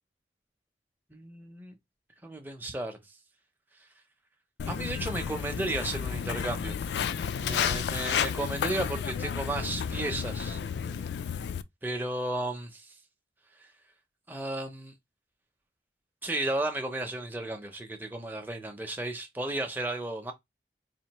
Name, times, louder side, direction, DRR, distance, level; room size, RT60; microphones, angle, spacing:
voice 1, 1.1-1.8 2.2-3.0 4.7-6.8 7.4-11.1 11.8-12.9 14.3-14.9 16.2-20.3, right 2 dB, 10° right, 0.6 m, -34 dB
Walk footsteps, 4.6-11.6, left 7 dB, 70° left, 0.3 m, -32 dB
4.3 x 2.5 x 2.9 m
head